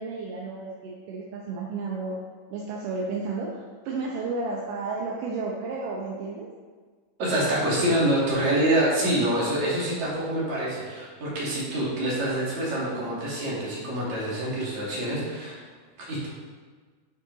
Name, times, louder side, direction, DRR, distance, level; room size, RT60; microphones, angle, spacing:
voice 1, 0.0-2.2 2.5-6.5, right 3 dB, 70° right, -4 dB, 2.2 m, -32 dB
voice 2, 7.2-15.6 16.1-16.3, right 1 dB, 50° right, -6 dB, 3.4 m, -26 dB
9.1 x 6.6 x 4.0 m, 1.5 s
omnidirectional pair, 4.4 m